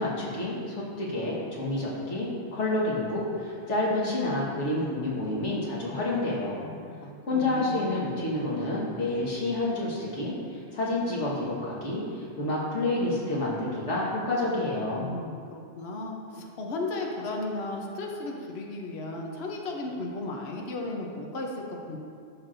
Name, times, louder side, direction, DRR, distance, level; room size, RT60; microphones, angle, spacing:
voice 1, 0.0-6.6 7.3-15.1, left 2 dB, 90° left, -5 dB, 1.9 m, -29 dB
voice 2, 6.6-7.8 14.9-22.0, left 2 dB, 65° left, 0 dB, 1.1 m, -35 dB
12.5 x 6.0 x 2.6 m, 2.3 s
omnidirectional pair, 1.2 m